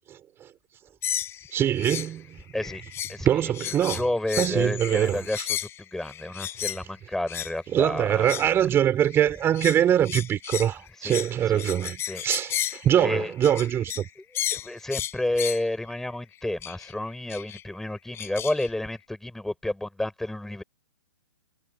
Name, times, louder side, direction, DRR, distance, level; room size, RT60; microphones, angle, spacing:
voice 1, 0.1-0.5 1.5-2.4 3.2-4.0 4.4-5.5 7.7-14.1, right 10 dB, 20° right, 5.9 m, -23 dB
sound 1, 1.0-2.1 2.4-3.2 3.5-6.8 7.3-7.5 8.1-8.6 9.1-14.1 14.3-15.7 16.6-16.9 17.3-17.6 18.1-18.7, left 11 dB, 20° left, 6.8 m, -33 dB
voice 2, 3.1-3.4 3.9-8.3 11.0-11.2 11.5-11.7 12.0-12.2 13.0-13.3 14.2-14.3 14.5-20.6, left 1 dB, 5° left, 7.2 m, -30 dB
hypercardioid pair, 135°, 13 cm